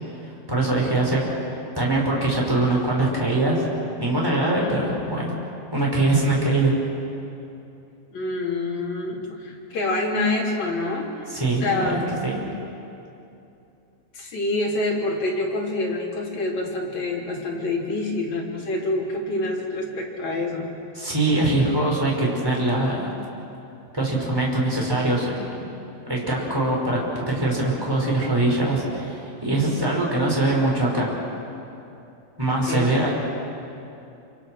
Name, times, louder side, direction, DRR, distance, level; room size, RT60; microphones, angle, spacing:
voice 1, 0.5-3.6 4.0-5.4 5.7-6.7 11.3-12.4 21.0-23.1 23.9-25.5 26.1-27.0 27.3-31.1 32.4-33.1, right 2 dB, 5° right, -3 dB, 5.3 m, -22 dB
voice 2, 4.6-4.9 8.1-11.3 11.6-12.1 14.1-20.7 32.7-32.9, left 2 dB, 45° left, -3 dB, 4.3 m, -26 dB
27.5 x 27.0 x 6.5 m, 2.7 s
omnidirectional pair, 4.8 m